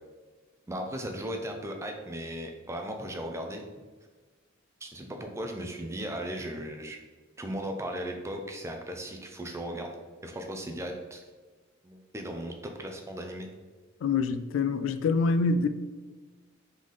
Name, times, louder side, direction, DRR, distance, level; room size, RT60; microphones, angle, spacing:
voice 1, 0.7-3.6 4.8-7.0 7.4-10.0 10.2-11.2 11.8-13.5, equal, 15° right, 0.4 m, -37 dB
voice 2, 14.0-15.7, left 4 dB, 80° left, 0.3 m, -25 dB
4.0 x 3.8 x 3.2 m
head